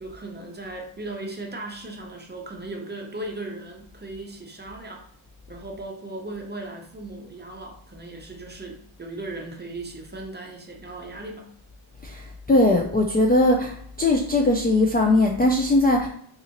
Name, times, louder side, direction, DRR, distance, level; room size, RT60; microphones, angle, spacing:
voice 1, 0.0-5.0 5.5-11.5, right 2 dB, 20° right, 1 dB, 0.6 m, -37 dB
voice 2, 12.0-16.1, left 2 dB, 20° left, 0 dB, 0.3 m, -20 dB
3.9 x 2.6 x 2.9 m, 0.64 s
wide cardioid pair, 120°, 49 cm